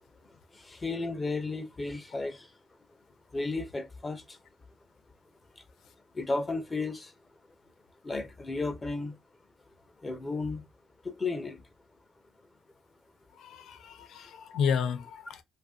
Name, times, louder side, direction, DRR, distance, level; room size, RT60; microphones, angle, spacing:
voice 1, 0.7-2.4 3.3-4.2 6.2-7.1 8.0-9.1 10.0-10.6 11.2-11.6, left 3 dB, 25° left, 0.6 m, -33 dB
voice 2, 13.4-15.4, left 7 dB, 75° left, 0.4 m, -31 dB
2.7 x 2.6 x 2.3 m
cardioid pair, 90°, 0 cm